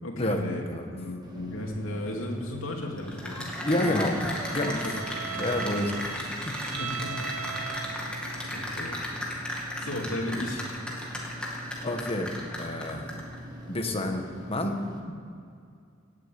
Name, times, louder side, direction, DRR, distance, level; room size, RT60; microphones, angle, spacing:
voice 1, 0.0-0.6 0.9-4.1 4.6-5.4 6.7-7.6 7.9-8.3 8.5-9.0 9.8-10.6, left 1 dB, 85° left, 0 dB, 2.7 m, -35 dB
sound 1, 1.2-15.0, equal, 20° right, 1.8 m, -43 dB
Cheering / Applause, 3.0-13.3, left 1 dB, 5° left, 2.5 m, -35 dB
voice 2, 3.6-4.8 5.3-6.5 11.8-12.3 12.6-13.1 13.7-14.8, left 1 dB, 30° left, 4 dB, 1.6 m, -29 dB
Bowed string instrument, 3.7-8.4, right 8 dB, 80° right, 0.7 m, -39 dB
17.5 x 8.6 x 8.5 m, 2.4 s
head